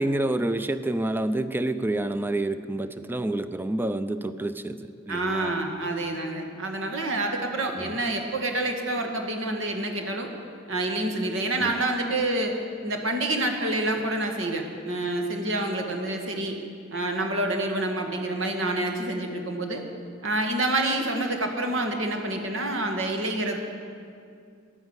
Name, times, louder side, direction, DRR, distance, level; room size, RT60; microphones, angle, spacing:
voice 1, 0.0-5.6 7.7-7.9 11.6-11.7, right 1 dB, 10° right, 12 dB, 0.5 m, -28 dB
voice 2, 5.1-10.3 10.7-12.6 12.8-16.6 16.9-19.8 20.2-23.6, right 2 dB, 75° right, 3 dB, 2.0 m, -27 dB
14.0 x 11.0 x 8.1 m, 2.3 s
head